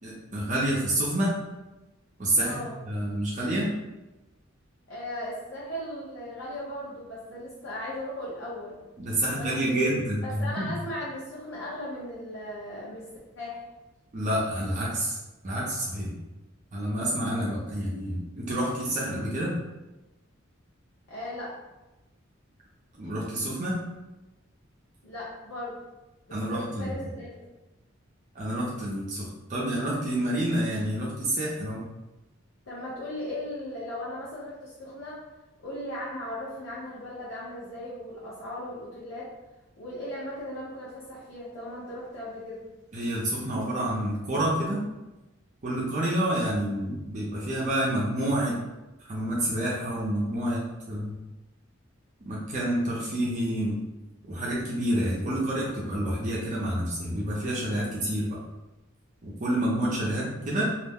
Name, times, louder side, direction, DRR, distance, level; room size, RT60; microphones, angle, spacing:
voice 1, 0.0-1.3 2.2-3.7 9.0-10.7 14.1-15.2 15.4-16.1 16.7-19.5 22.9-23.8 26.3-26.9 28.3-31.8 42.9-44.8 45.6-48.6 49.0-51.2 52.2-53.8 54.3-58.4 59.2-60.6, right 1 dB, 40° right, -5 dB, 0.5 m, -28 dB
voice 2, 2.4-2.8 4.9-8.8 9.3-9.9 10.2-13.1 13.3-13.7 21.1-21.5 25.0-25.7 26.3-27.3 32.7-35.2 35.6-39.3 39.8-42.6, left 1 dB, 80° left, -8 dB, 0.7 m, -37 dB
2.4 x 2.0 x 3.4 m, 1.0 s
head